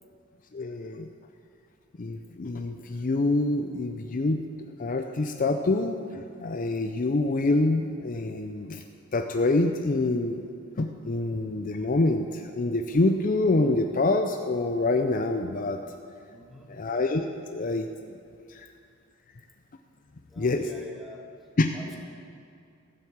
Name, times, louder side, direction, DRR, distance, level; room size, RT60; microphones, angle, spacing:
voice 1, 0.5-1.1 2.0-4.4 4.8-8.8 9.1-10.4 10.8-15.8 16.7-17.9 18.5-18.6 20.4-20.7 21.6-21.7, left 2 dB, 40° left, 5 dB, 0.5 m, -26 dB
voice 2, 16.3-16.7 20.3-21.3 21.7-22.0, left 2 dB, ahead, -1 dB, 1.6 m, -46 dB
14.0 x 7.6 x 7.3 m, 2.4 s
head